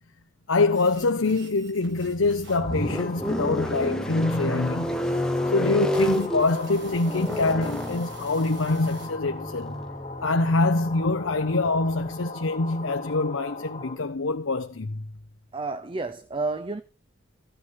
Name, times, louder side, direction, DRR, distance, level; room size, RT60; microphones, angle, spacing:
voice 1, 0.5-5.0 5.5-9.8 10.2-15.1, left 3 dB, 65° left, 0.8 m, -25 dB
sound 1, 0.7-9.1, right 3 dB, 55° right, 5.7 m, -49 dB
sound 2, 1.9-12.1, equal, 5° left, 0.8 m, -31 dB
sound 3, 2.5-13.9, left 3 dB, 30° left, 4.0 m, -39 dB
voice 2, 15.5-16.8, right 3 dB, 25° right, 0.6 m, -30 dB
15.0 x 9.0 x 5.7 m
head